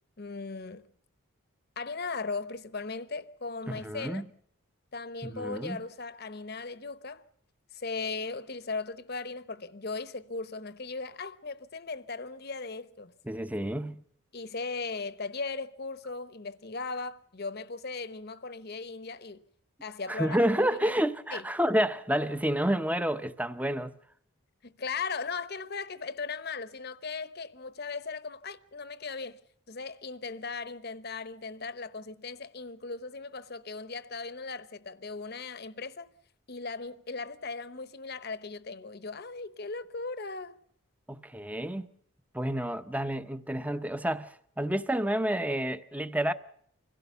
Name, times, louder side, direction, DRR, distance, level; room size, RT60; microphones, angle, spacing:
voice 1, 0.2-0.9 1.8-4.2 4.9-7.2 7.7-13.1 14.3-19.4 19.8-20.4 20.6-20.8 21.3-21.4 24.6-29.4 29.7-36.1 36.5-40.6, left 4 dB, 45° left, 1.0 m, -38 dB
voice 2, 3.7-4.2 5.2-5.8 13.3-14.0 20.1-23.9 41.1-41.9 42.3-46.3, equal, 5° right, 0.7 m, -29 dB
25.0 x 16.5 x 6.9 m
head